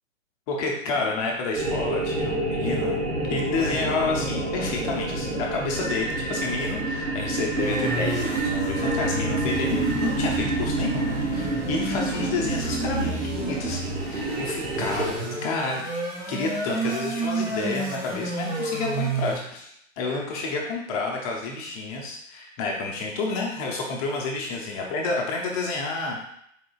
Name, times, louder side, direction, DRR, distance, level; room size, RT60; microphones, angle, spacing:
voice 1, 0.5-3.0 3.3-15.8 16.3-26.2, left 3 dB, 30° left, -1 dB, 0.7 m, -30 dB
sound 1, 1.5-15.1, right 2 dB, 80° right, 1.2 m, -28 dB
sound 2, 7.5-19.4, right 3 dB, 10° right, 0.5 m, -30 dB
4.4 x 3.8 x 2.3 m, 0.73 s
figure-of-eight pair, 120°, 39 cm